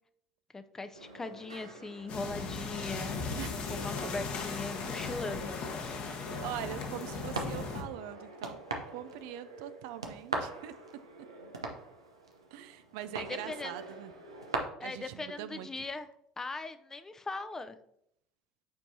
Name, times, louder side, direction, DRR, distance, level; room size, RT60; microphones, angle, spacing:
voice 1, 0.5-5.5 13.2-13.8 14.8-16.1 16.4-17.8, left 3 dB, 20° left, 10 dB, 0.5 m, -40 dB
sound 1, 0.9-14.5, right 3 dB, 90° right, 0.7 m, -43 dB
sound 2, 2.1-7.8, left 5 dB, 50° left, 1.1 m, -37 dB
voice 2, 6.1-8.6 8.9-10.7 12.5-14.1 14.8-15.8, right 11 dB, 65° right, 12 dB, 0.4 m, -42 dB
8.4 x 4.5 x 2.7 m, 0.75 s
hypercardioid pair, 65°, 3 cm